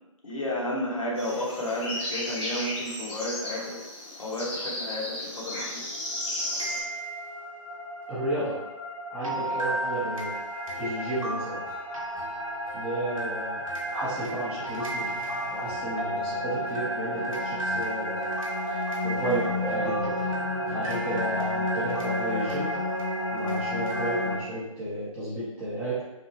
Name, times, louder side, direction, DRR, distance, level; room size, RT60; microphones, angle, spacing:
voice 1, 0.2-3.8 4.2-5.8 19.1-19.4, left 1 dB, 75° left, -4 dB, 0.9 m, -32 dB
sound 1, 1.2-6.8, left 1 dB, 20° left, 0.7 m, -34 dB
sound 2, 5.7-24.4, equal, 75° right, 0.6 m, -31 dB
voice 2, 8.1-8.7 9.1-10.4 10.8-11.7 12.7-13.6 13.9-15.1 15.5-18.3 19.0-20.2 20.7-22.8 23.3-26.0, right 1 dB, 5° right, -11 dB, 0.4 m, -32 dB
sound 3, 10.7-21.7, equal, 35° right, 0.9 m, -49 dB
2.8 x 2.0 x 2.7 m, 1.0 s
figure-of-eight pair, 140°, 18 cm